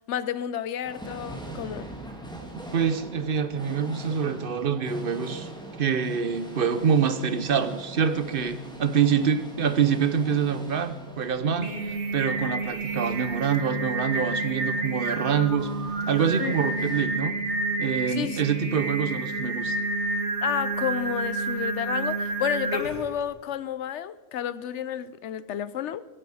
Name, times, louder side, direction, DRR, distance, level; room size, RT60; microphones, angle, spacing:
voice 1, 0.0-1.9 16.4-16.5 18.1-18.4 20.4-26.1, left 10 dB, 90° left, 1.0 m, -31 dB
sound 1, 0.8-17.0, right 1 dB, 5° left, 1.8 m, -43 dB
voice 2, 2.7-5.5 5.8-15.7 16.1-17.3 17.8-19.8, right 7 dB, 55° right, 0.9 m, -26 dB
Singing, 11.4-23.1, right 3 dB, 80° right, 2.0 m, -29 dB
23.0 x 10.0 x 4.9 m
omnidirectional pair, 1.1 m